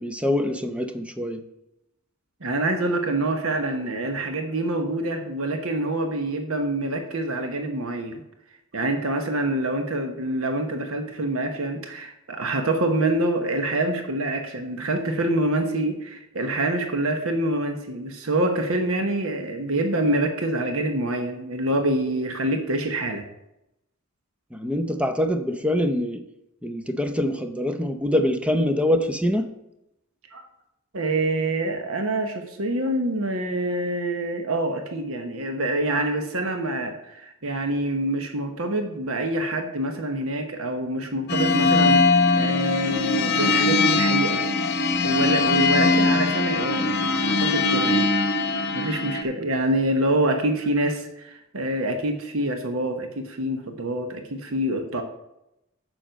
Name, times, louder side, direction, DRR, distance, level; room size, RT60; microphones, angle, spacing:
voice 1, 0.0-1.4 24.5-26.2 26.6-29.5, left 1 dB, 5° right, 7 dB, 0.7 m, -24 dB
voice 2, 2.4-8.2 8.7-23.2 30.3-30.4 30.9-42.0 42.4-44.4 45.0-48.1 48.7-55.0, right 1 dB, 80° right, 6 dB, 1.1 m, -26 dB
sound 1, 41.3-49.2, left 3 dB, 50° left, 0.9 m, -21 dB
9.0 x 6.3 x 5.2 m, 0.86 s
head